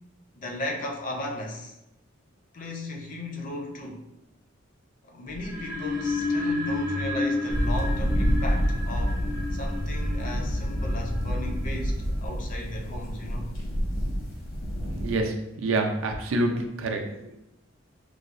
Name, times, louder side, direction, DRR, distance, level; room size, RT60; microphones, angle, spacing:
voice 1, 0.4-1.7 2.5-4.1 5.0-9.2 9.5-13.5, left 1 dB, 40° left, 1 dB, 0.4 m, -36 dB
sound 1, 5.3-12.3, left 2 dB, 45° right, 0.7 m, -32 dB
sound 2, 7.5-15.2, equal, 75° left, 0.8 m, -28 dB
voice 2, 14.9-17.3, right 2 dB, 90° right, 3 dB, 0.5 m, -27 dB
4.6 x 2.0 x 2.5 m, 0.89 s
head